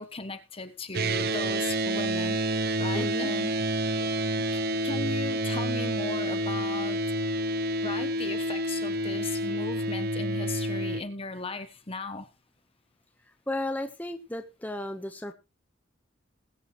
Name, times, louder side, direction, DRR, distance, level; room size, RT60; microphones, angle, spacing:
voice 1, 0.0-3.5 4.0-4.1 4.4-7.0 7.8-12.3, left 3 dB, 30° left, 1.1 m, -37 dB
sound 1, 0.9-11.0, right 1 dB, 50° right, 0.6 m, -28 dB
voice 2, 2.9-3.3 13.5-15.3, left 1 dB, 10° left, 1.0 m, -34 dB
20.5 x 7.9 x 3.1 m
head